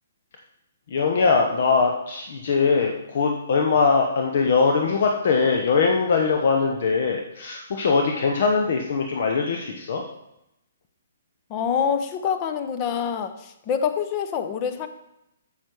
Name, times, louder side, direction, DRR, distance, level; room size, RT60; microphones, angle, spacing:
voice 1, 0.9-10.0, left 5 dB, 55° left, 2 dB, 1.0 m, -21 dB
voice 2, 11.5-14.9, left 7 dB, 30° left, 9 dB, 0.9 m, -26 dB
8.9 x 7.5 x 4.7 m, 0.86 s
figure-of-eight pair, 125°, 0 cm